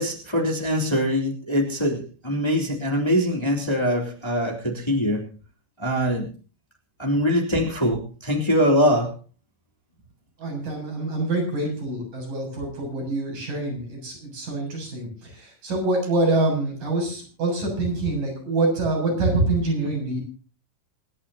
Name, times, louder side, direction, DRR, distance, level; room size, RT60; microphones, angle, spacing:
voice 1, 0.0-5.2 5.8-6.2 7.0-9.1, equal, 10° left, 0 dB, 2.8 m, -23 dB
voice 2, 10.4-20.2, right 2 dB, 80° right, -1 dB, 9.2 m, -25 dB
27.0 x 11.5 x 2.8 m, 0.37 s
omnidirectional pair, 3.8 m